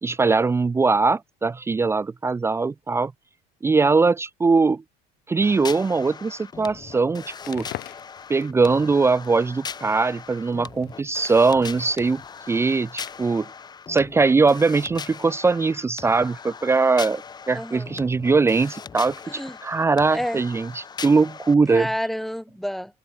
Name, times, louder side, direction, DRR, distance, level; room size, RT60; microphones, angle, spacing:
voice 1, 0.0-3.1 3.6-4.8 5.3-7.7 8.3-12.2 12.5-13.5 13.9-17.2 17.5-21.9, right 4 dB, 15° right, 0.9 m, -21 dB
sound 1, 5.4-21.5, left 6 dB, 25° left, 4.3 m, -39 dB
Crackle, 7.3-13.5, left 19 dB, 65° left, 3.9 m, -45 dB
voice 2, 17.5-17.9 19.3-19.6 20.1-20.4 21.7-23.0, equal, ahead, 1.1 m, -29 dB
cardioid pair, 145°, 18 cm